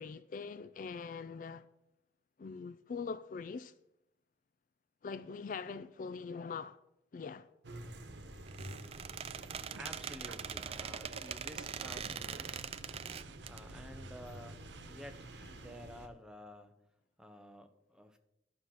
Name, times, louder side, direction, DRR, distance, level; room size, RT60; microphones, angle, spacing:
voice 1, 0.0-1.6 2.4-3.7 5.0-6.8 7.1-7.5, left 5 dB, 45° left, 0.3 m, -42 dB
sound 1, 7.6-16.1, right 1 dB, 70° right, 1.2 m, -50 dB
Squeak, 8.5-13.6, right 7 dB, 35° right, 0.4 m, -42 dB
sound 2, 9.2-15.1, right 5 dB, 85° right, 0.6 m, -54 dB
voice 2, 9.8-12.8 13.5-14.6 14.9-16.8 17.2-18.2, equal, 5° right, 0.8 m, -51 dB
11.5 x 6.5 x 5.8 m
head